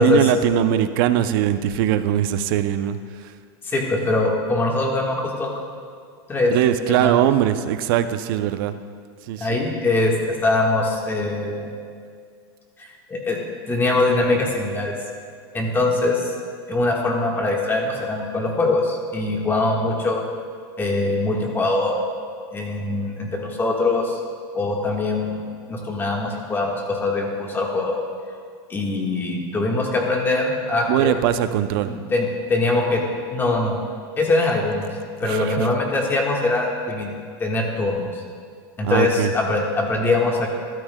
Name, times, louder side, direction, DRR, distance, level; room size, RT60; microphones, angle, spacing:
voice 1, 0.0-3.3 6.5-8.7 9.3-9.6 30.9-31.9 35.2-35.7 38.8-39.3, right 11 dB, 60° right, 11 dB, 0.5 m, -21 dB
voice 2, 3.6-5.5 6.3-6.5 6.9-7.1 9.4-11.7 12.8-13.4 13.7-14.9 15.5-16.3 16.7-20.2 20.8-22.0 22.5-24.2 24.5-25.4 25.7-28.0 28.7-31.2 31.9-33.0 33.3-33.8 34.2-34.9 35.2-37.1 37.4-38.2 38.8-40.5, left 2 dB, 15° left, 0 dB, 1.5 m, -22 dB
13.0 x 12.5 x 2.2 m, 2.1 s
supercardioid pair, 140°, 13 cm